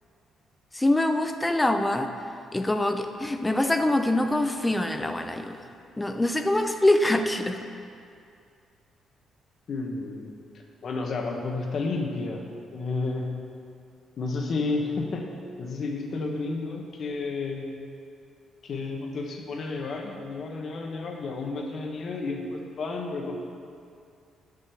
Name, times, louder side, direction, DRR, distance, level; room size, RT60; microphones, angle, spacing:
voice 1, 0.7-2.1 2.5-5.6 6.0-7.6, left 1 dB, 15° left, 7 dB, 0.6 m, -24 dB
voice 2, 9.7-10.3 10.8-12.4 12.7-13.3 14.2-15.3 15.6-17.7 18.6-23.4, left 3 dB, 55° left, 2 dB, 1.4 m, -31 dB
10.5 x 5.4 x 7.0 m, 2.4 s
cardioid pair, 90°, 0 cm